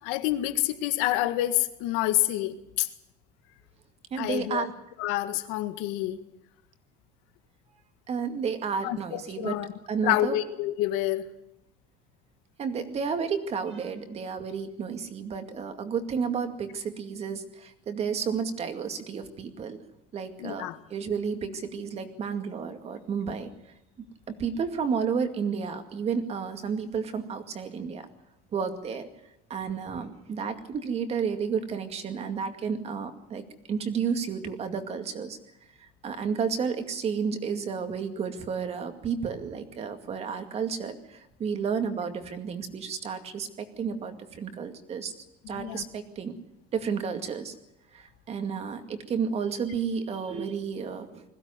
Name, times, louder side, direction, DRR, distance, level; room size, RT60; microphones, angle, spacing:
voice 1, 0.0-2.9 4.2-4.7 5.0-6.2 8.8-9.7 10.0-11.3 20.4-20.8 45.4-45.8, left 15 dB, 85° left, 10 dB, 1.8 m, -28 dB
voice 2, 4.1-4.7 8.1-9.6 9.9-10.4 12.6-19.8 20.1-23.5 24.3-28.1 28.5-29.1 29.5-35.4 35.8-45.1 45.5-46.3 46.7-47.6 47.9-51.2, right 6 dB, 35° right, 7 dB, 2.3 m, -31 dB
21.0 x 16.0 x 9.7 m, 0.85 s
cardioid pair, 155°, 19 cm